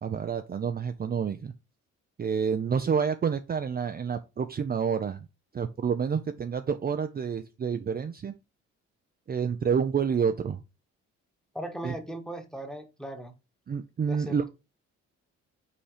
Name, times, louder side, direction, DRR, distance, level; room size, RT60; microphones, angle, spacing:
voice 1, 0.0-1.5 2.2-5.2 5.5-8.3 9.3-10.6 11.8-11.9 13.7-14.5, right 6 dB, 30° right, 7 dB, 0.6 m, -28 dB
voice 2, 11.5-13.3 14.1-14.5, right 1 dB, ahead, 6 dB, 1.4 m, -38 dB
5.6 x 4.2 x 5.0 m, 0.27 s
cardioid pair, 90°, 30 cm